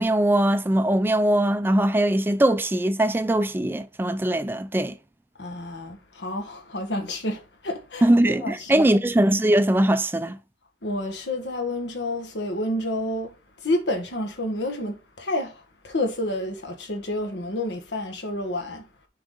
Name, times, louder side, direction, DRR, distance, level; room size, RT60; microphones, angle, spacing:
voice 1, 0.0-4.9 8.0-10.4, right 1 dB, 10° right, 0.3 m, -21 dB
voice 2, 5.4-8.8 10.8-18.8, left 1 dB, 85° left, 1.4 m, -29 dB
6.1 x 4.7 x 3.8 m
head